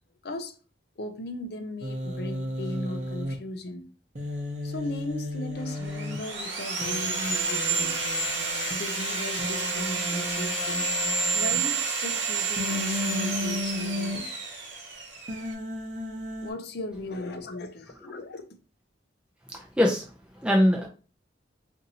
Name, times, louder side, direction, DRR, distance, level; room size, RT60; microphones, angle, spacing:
voice 1, 0.2-0.6 1.0-3.9 4.6-8.0 8.7-10.9 11.3-14.4 16.4-18.6, left 2 dB, 55° left, 0.5 m, -37 dB
Human voice, 1.8-3.3 4.2-6.2 6.8-8.7 9.4-11.5 12.6-14.2 15.3-16.5, left 1 dB, 40° right, 0.8 m, -34 dB
Sawing, 5.7-15.5, right 4 dB, 75° right, 1.0 m, -30 dB
voice 2, 19.5-20.1 20.4-20.9, left 1 dB, 5° right, 0.5 m, -22 dB
2.8 x 2.6 x 4.1 m
head